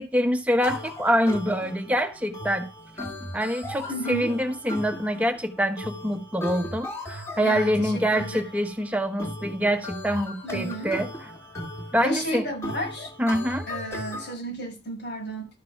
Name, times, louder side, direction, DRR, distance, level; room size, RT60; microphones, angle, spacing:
voice 1, 0.0-2.7 3.3-11.1 11.9-12.4 13.2-13.7, equal, 10° right, 1.1 m, -25 dB
sound 1, 0.6-14.3, left 1 dB, 15° left, 2.4 m, -37 dB
voice 2, 3.9-4.3 7.4-8.4 10.4-10.9 12.0-13.1 13.7-15.5, equal, 90° left, 6.3 m, -32 dB
12.5 x 4.8 x 5.9 m
head